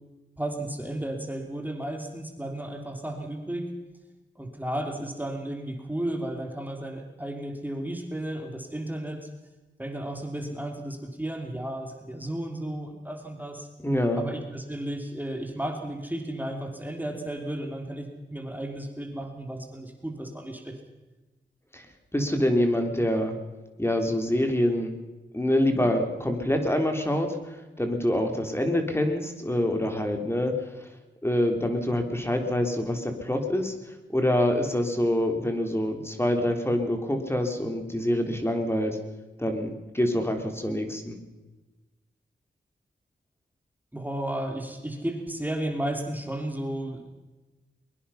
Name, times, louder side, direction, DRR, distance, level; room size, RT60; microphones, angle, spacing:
voice 1, 0.4-3.7 4.4-9.3 9.8-13.7 14.2-20.8 43.9-47.1, right 1 dB, 10° right, 3 dB, 3.0 m, -33 dB
voice 2, 13.8-14.2 21.7-21.8 22.1-23.3 23.8-24.9 25.3-30.5 30.8-30.9 31.2-39.0 39.4-41.2, left 1 dB, 15° left, 5 dB, 3.4 m, -26 dB
22.5 x 22.0 x 5.7 m, 1.1 s
cardioid pair, 70°, 19 cm